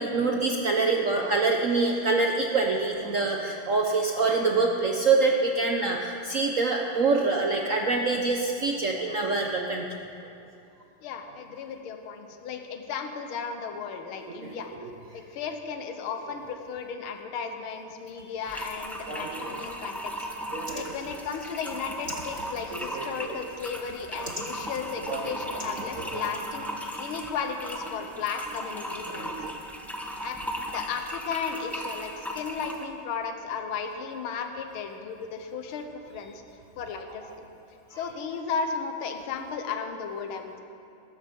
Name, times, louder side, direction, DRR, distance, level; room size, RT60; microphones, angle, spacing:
voice 1, 0.0-9.9 14.4-14.5 14.8-14.9 19.1-19.6 20.5-20.9 22.7-23.4 24.2-24.4 25.1-25.6 26.0-26.1 29.1-29.5, right 3 dB, 60° right, 1 dB, 0.8 m, -26 dB
voice 2, 11.0-14.7 15.1-20.3 20.7-29.5 30.2-36.3 36.8-37.5 37.9-40.6, left 6 dB, 80° left, 5 dB, 1.8 m, -35 dB
sound 1, 18.5-32.9, equal, ahead, 0.3 m, -37 dB
13.5 x 13.0 x 5.4 m, 2.6 s
omnidirectional pair, 2.3 m